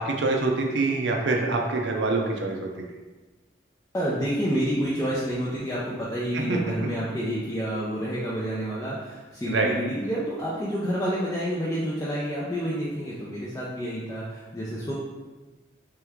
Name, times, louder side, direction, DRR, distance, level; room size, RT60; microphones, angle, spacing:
voice 1, 0.0-2.7 9.5-9.7, right 3 dB, 65° right, 1 dB, 0.5 m, -25 dB
voice 2, 3.9-14.9, equal, 15° left, -8 dB, 0.5 m, -29 dB
3.3 x 3.0 x 3.5 m, 1.2 s
head